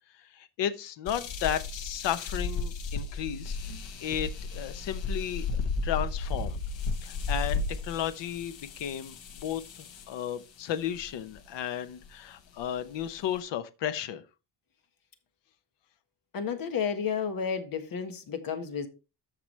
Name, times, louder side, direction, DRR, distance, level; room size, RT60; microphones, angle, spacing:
voice 1, 0.2-3.6 4.0-5.5 5.8-6.6 7.0-14.2, left 10 dB, 70° left, 0.9 m, -34 dB
sound 1, 1.1-10.2 11.0-11.4 12.0-12.1 12.6-13.4, left 3 dB, 85° left, 1.6 m, -34 dB
voice 2, 16.3-18.9, left 6 dB, 50° left, 1.5 m, -31 dB
14.0 x 4.9 x 3.2 m
cardioid pair, 175°, 45 cm